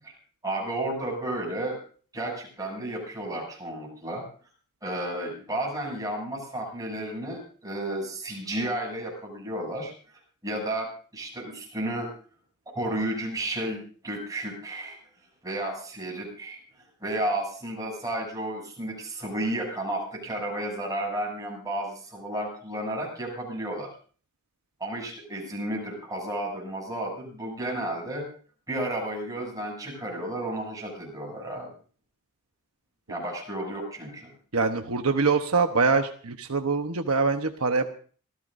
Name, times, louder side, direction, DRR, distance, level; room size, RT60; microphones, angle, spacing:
voice 1, 0.4-1.8 2.1-4.2 4.8-9.9 10.4-12.1 12.7-15.0 15.4-16.6 17.0-23.9 24.8-28.2 28.7-31.7 33.1-34.3, right 1 dB, 15° right, 0 dB, 7.8 m, -32 dB
voice 2, 34.5-37.9, right 4 dB, 70° right, 5 dB, 1.1 m, -24 dB
26.5 x 15.5 x 2.7 m, 0.42 s
head